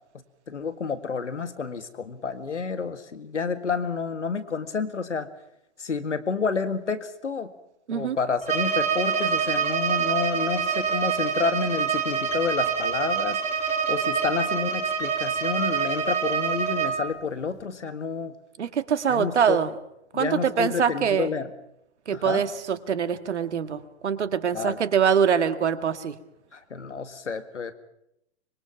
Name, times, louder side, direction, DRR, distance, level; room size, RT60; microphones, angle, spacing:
voice 1, 0.5-5.3 5.8-7.5 7.9-13.4 13.9-18.3 19.1-19.6 20.1-21.5 22.1-22.4 24.5-24.8 26.5-27.7, left 5 dB, 85° left, 10 dB, 2.0 m, -29 dB
Bowed string instrument, 8.4-17.0, right 6 dB, 20° right, 2.9 m, -26 dB
voice 2, 18.6-19.7 20.1-21.3 22.1-26.2, right 7 dB, 75° right, 11 dB, 1.9 m, -24 dB
25.0 x 23.0 x 5.9 m, 0.80 s
hypercardioid pair, 110°, 35 cm